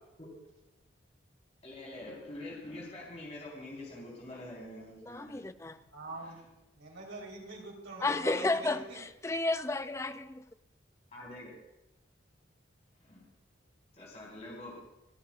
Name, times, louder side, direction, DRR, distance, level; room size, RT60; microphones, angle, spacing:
voice 1, 1.6-5.4 11.1-11.5 13.0-13.2 13.9-14.8, left 1 dB, 35° left, 4.5 m, -45 dB
voice 2, 5.0-5.8 8.0-10.5, left 2 dB, 15° left, 0.4 m, -32 dB
voice 3, 5.9-6.4 6.7-9.0, right 2 dB, 90° right, 3.9 m, -44 dB
27.5 x 9.8 x 2.5 m
head